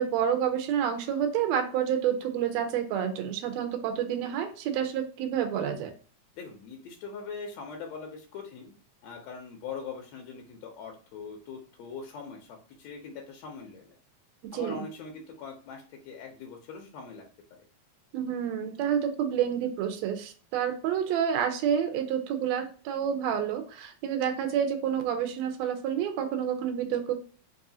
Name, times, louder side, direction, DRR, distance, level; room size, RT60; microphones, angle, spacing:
voice 1, 0.0-5.9 14.4-14.8 18.1-27.1, right 9 dB, 75° right, 6 dB, 1.7 m, -29 dB
voice 2, 6.4-8.7 9.0-13.9 14.5-17.2, left 5 dB, 75° left, 1 dB, 1.7 m, -42 dB
4.7 x 2.4 x 2.7 m, 0.39 s
omnidirectional pair, 3.3 m